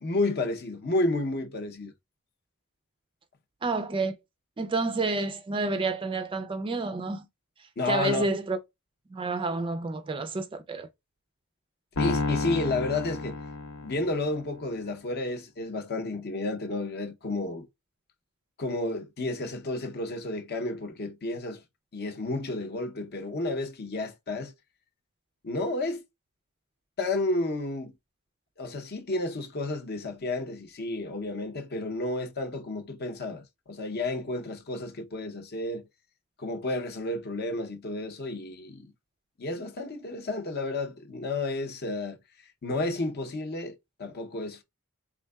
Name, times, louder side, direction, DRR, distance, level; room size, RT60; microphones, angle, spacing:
voice 1, 0.0-1.9 7.8-8.3 12.0-13.4 13.8-17.7 18.6-21.6 21.9-24.5 25.4-26.0 27.0-27.9 28.6-35.8 36.4-38.9 39.4-44.6, left 2 dB, 45° left, 0.7 m, -31 dB
voice 2, 3.6-4.2 4.6-7.3 7.9-8.6 9.1-10.9, right 3 dB, 20° right, 0.3 m, -29 dB
Piano, 12.0-14.4, left 3 dB, 75° left, 0.8 m, -30 dB
4.4 x 3.5 x 2.2 m
head